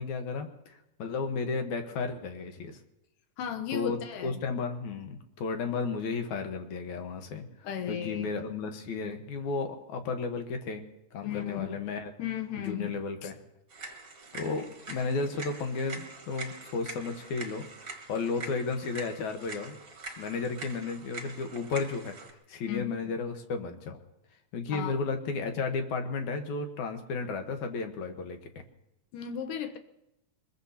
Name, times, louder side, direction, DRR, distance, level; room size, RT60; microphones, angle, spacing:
voice 1, 0.0-2.8 3.7-7.5 7.9-10.8 11.1-12.1 12.6-13.4 14.3-17.7 18.1-19.8 20.2-22.2 22.5-24.0 24.5-28.4, left 4 dB, 70° left, 5 dB, 2.5 m, -33 dB
voice 2, 3.4-4.4 7.6-8.3 11.2-11.9 12.2-13.3 22.7-23.1 24.7-25.0 29.1-29.8, left 9 dB, 90° left, 7 dB, 2.6 m, -36 dB
sound 1, 13.7-22.3, right 3 dB, 35° right, 1.6 m, -44 dB
24.0 x 21.0 x 2.9 m, 0.88 s
omnidirectional pair, 3.6 m